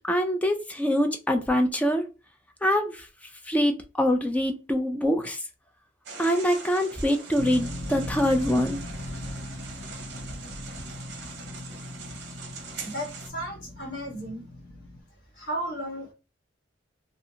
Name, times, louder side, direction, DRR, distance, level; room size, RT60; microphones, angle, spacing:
voice 1, 0.1-2.0 2.6-3.1 3.5-5.4 6.2-8.8, equal, 10° left, 0.4 m, -24 dB
sound 1, 6.1-13.3, right 5 dB, 60° right, 0.6 m, -42 dB
sound 2, 7.4-15.0, left 1 dB, 85° left, 0.7 m, -39 dB
voice 2, 12.8-14.5 15.3-16.1, right 1 dB, 70° left, 1.3 m, -34 dB
2.7 x 2.4 x 2.7 m
head